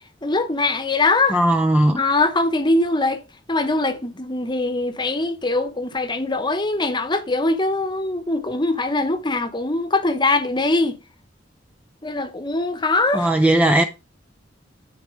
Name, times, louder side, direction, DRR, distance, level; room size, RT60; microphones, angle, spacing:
voice 1, 0.2-1.4 2.0-3.2 3.5-11.0 12.0-13.3, left 2 dB, 25° left, 1.0 m, -22 dB
voice 2, 1.3-2.0 13.1-13.8, right 1 dB, 5° right, 0.5 m, -17 dB
9.8 x 4.2 x 4.5 m
head